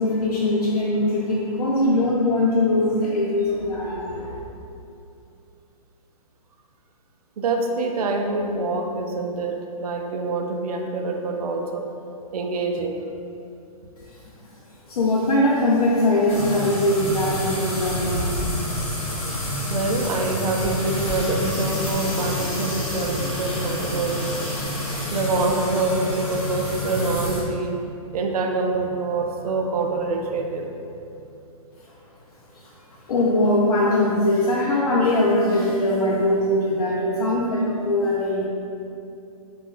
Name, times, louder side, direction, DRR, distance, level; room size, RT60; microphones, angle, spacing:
voice 1, 0.0-4.4 14.9-18.6 33.1-38.4, left 1 dB, 90° left, -5 dB, 0.5 m, -21 dB
voice 2, 7.4-11.9 12.3-13.0 19.7-24.3 25.1-27.8 28.1-30.7, right 3 dB, 85° right, 3 dB, 0.4 m, -25 dB
sound 1, 16.3-27.4, left 1 dB, 45° left, 1.0 m, -28 dB
2.3 x 2.1 x 3.7 m, 2.6 s
hypercardioid pair, 175°, 19 cm